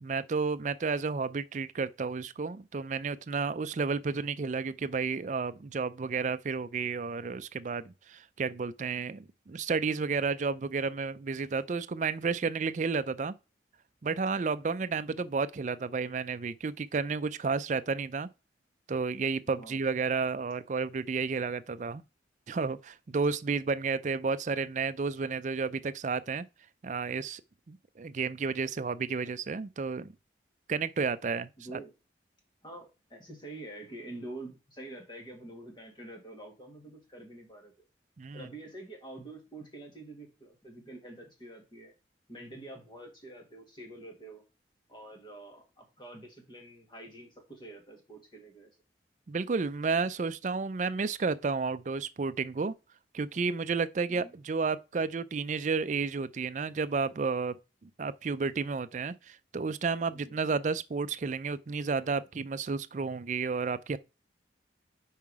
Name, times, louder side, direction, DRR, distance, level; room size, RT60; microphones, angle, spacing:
voice 1, 0.0-13.3 14.0-18.3 18.9-22.0 22.5-26.5 26.8-27.4 27.7-30.1 30.7-31.8 38.2-38.5 49.3-52.7 53.1-57.6 57.8-64.0, right 4 dB, 45° right, 0.4 m, -31 dB
voice 2, 19.4-19.8 31.6-31.9 32.6-37.7 38.3-41.9 42.3-44.4 44.9-48.7 54.1-54.3 60.1-60.4, right 2 dB, 25° left, 1.9 m, -47 dB
5.8 x 4.7 x 4.7 m
head